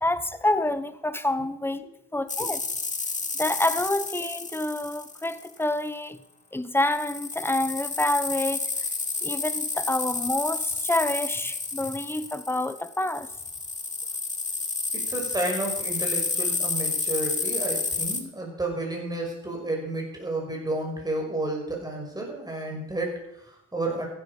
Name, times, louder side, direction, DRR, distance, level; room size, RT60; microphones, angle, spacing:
voice 1, 0.0-1.8 2.1-2.6 3.4-6.2 6.5-8.7 9.2-13.3, left 1 dB, 10° left, 1.1 m, -27 dB
sound 1, 2.3-5.6 6.8-18.2, left 3 dB, 25° left, 2.1 m, -30 dB
voice 2, 14.9-24.1, right 2 dB, 15° right, 5.9 m, -31 dB
14.5 x 12.0 x 5.6 m
cardioid pair, 90°, 30 cm